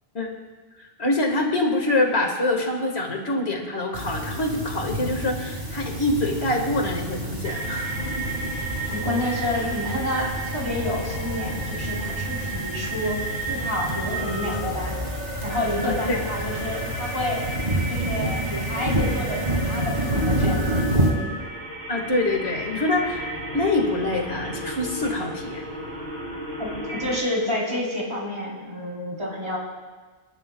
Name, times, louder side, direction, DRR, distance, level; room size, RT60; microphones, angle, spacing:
voice 1, 0.8-8.0 15.8-16.2 21.9-25.6, left 2 dB, 85° left, 2 dB, 2.0 m, -25 dB
Denver Sculpture On the War Trail, 3.9-21.1, right 1 dB, 45° right, 2.3 m, -29 dB
sound 1, 7.4-27.2, right 1 dB, 75° right, 3.8 m, -33 dB
voice 2, 8.9-13.2 13.5-15.0 15.4-17.4 17.9-20.8 26.6-29.6, left 1 dB, 25° right, -4 dB, 3.6 m, -29 dB
28.0 x 11.5 x 2.3 m, 1.3 s
omnidirectional pair, 1.1 m